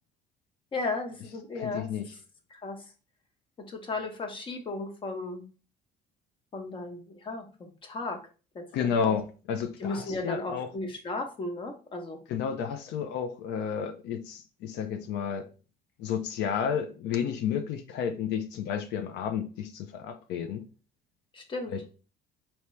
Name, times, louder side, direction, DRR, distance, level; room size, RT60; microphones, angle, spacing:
voice 1, 0.7-1.9 2.5-2.9 3.6-5.4 6.5-8.2 8.5-9.1 9.8-12.2 21.3-21.7, left 3 dB, 30° left, 0.9 m, -35 dB
voice 2, 1.5-2.1 8.7-10.7 12.3-15.5 16.0-20.6 21.7-21.8, left 7 dB, 85° left, 0.5 m, -31 dB
4.5 x 2.9 x 3.1 m
cardioid pair, 145°, 17 cm